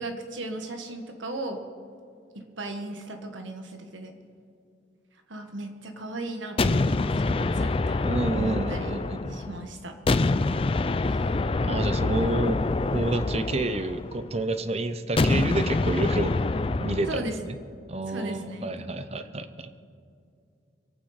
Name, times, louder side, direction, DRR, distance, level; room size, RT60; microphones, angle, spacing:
voice 1, 0.0-1.6 2.3-4.1 5.3-8.9 9.3-10.0 11.0-11.3 17.1-17.3 18.1-18.8, right 2 dB, 75° right, 5 dB, 1.6 m, -37 dB
sound 1, 6.6-9.6 10.1-14.3 15.2-17.3, left 3 dB, 30° left, 0.4 m, -26 dB
voice 2, 8.1-9.4 11.6-12.6 12.9-16.3 16.8-17.6 17.9-19.7, right 2 dB, 30° right, 10 dB, 0.7 m, -29 dB
23.5 x 8.9 x 5.0 m, 2.5 s
head